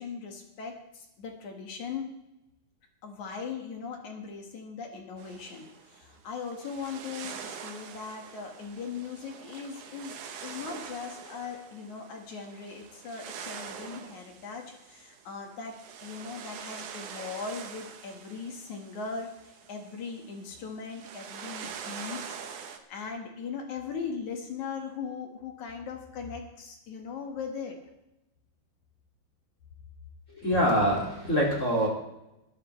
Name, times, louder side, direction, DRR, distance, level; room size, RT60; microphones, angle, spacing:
voice 1, 0.0-2.1 3.0-27.8, left 5 dB, 55° left, 2 dB, 2.9 m, -39 dB
sound 1, 5.2-22.8, right 7 dB, 65° right, 2.4 m, -45 dB
voice 2, 30.3-31.9, equal, 25° left, -2 dB, 2.3 m, -25 dB
21.0 x 12.5 x 3.3 m, 0.91 s
omnidirectional pair, 4.3 m